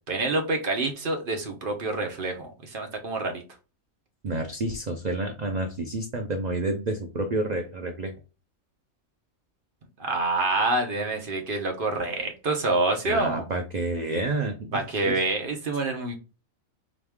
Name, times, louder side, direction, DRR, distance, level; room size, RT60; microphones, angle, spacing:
voice 1, 0.1-3.4 10.0-13.5 14.7-16.2, right 2 dB, 45° right, 0.9 m, -27 dB
voice 2, 4.2-8.1 13.0-15.2, right 2 dB, 85° right, 0.3 m, -29 dB
3.6 x 3.1 x 3.5 m
omnidirectional pair, 1.5 m